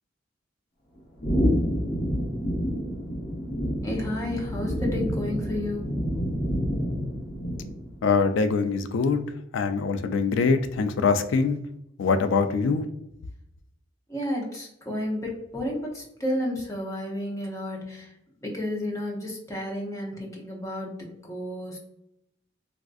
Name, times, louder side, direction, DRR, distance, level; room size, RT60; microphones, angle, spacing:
sound 1, 1.2-8.0, equal, 55° left, 0.8 m, -28 dB
voice 1, 3.8-5.9 14.1-18.1 18.4-21.8, left 1 dB, 15° left, -2 dB, 0.7 m, -32 dB
voice 2, 8.0-9.2 9.5-11.6 12.0-12.9, left 4 dB, 85° left, 10 dB, 0.3 m, -23 dB
3.5 x 2.4 x 2.3 m, 0.79 s
head